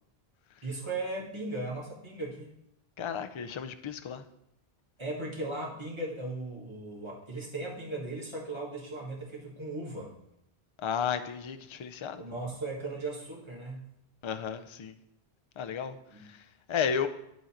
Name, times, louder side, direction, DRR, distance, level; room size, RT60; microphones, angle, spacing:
voice 1, 0.6-2.6 5.0-10.2 12.2-13.9 16.1-16.2, right 2 dB, 25° right, 1.7 m, -37 dB
voice 2, 3.0-4.3 10.8-12.2 14.2-15.0 15.6-17.1, left 7 dB, 50° left, 0.3 m, -33 dB
11.0 x 3.9 x 4.3 m
omnidirectional pair, 1.1 m